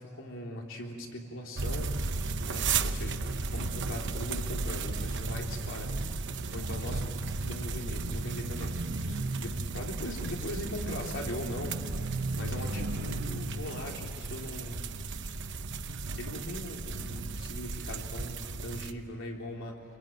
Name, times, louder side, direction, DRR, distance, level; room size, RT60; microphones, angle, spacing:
voice 1, 0.0-1.9 2.4-5.9 6.2-11.8 12.3-14.8 16.2-19.8, left 1 dB, 65° left, 0 dB, 3.6 m, -40 dB
sound 1, 1.6-18.9, right 3 dB, 60° right, 1.0 m, -34 dB
27.5 x 23.0 x 9.1 m, 2.5 s
head